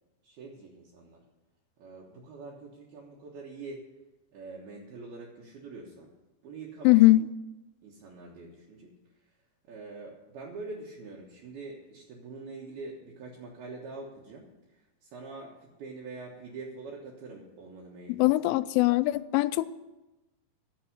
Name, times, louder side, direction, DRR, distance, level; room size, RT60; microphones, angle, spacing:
voice 1, 0.2-1.2 1.8-3.9 4.3-6.1 6.4-7.0 7.8-9.3 9.7-18.3, right 3 dB, 65° right, -3 dB, 2.8 m, -44 dB
voice 2, 6.9-7.2 18.1-19.7, left 18 dB, 90° left, 15 dB, 3.0 m, -21 dB
10.5 x 7.5 x 9.4 m, 1.0 s
omnidirectional pair, 5.5 m